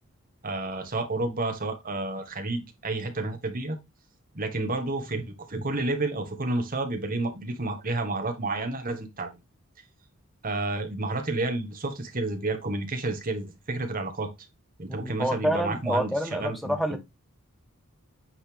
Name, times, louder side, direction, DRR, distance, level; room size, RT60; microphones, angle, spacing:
voice 1, 0.4-3.8 4.3-9.3 10.4-14.3 14.8-17.0, right 2 dB, 40° right, 1.5 m, -30 dB
voice 2, 14.9-17.0, equal, ahead, 1.0 m, -28 dB
9.0 x 4.1 x 3.4 m
head